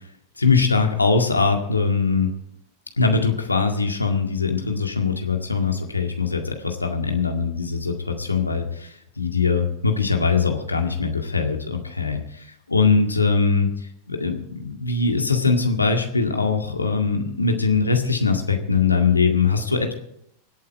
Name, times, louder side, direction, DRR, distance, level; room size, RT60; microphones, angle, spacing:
voice 1, 0.4-2.3 3.0-13.7 14.1-19.9, left 4 dB, 80° left, 4 dB, 2.0 m, -22 dB
25.0 x 8.6 x 4.5 m, 0.76 s
figure-of-eight pair, 90°, 0 cm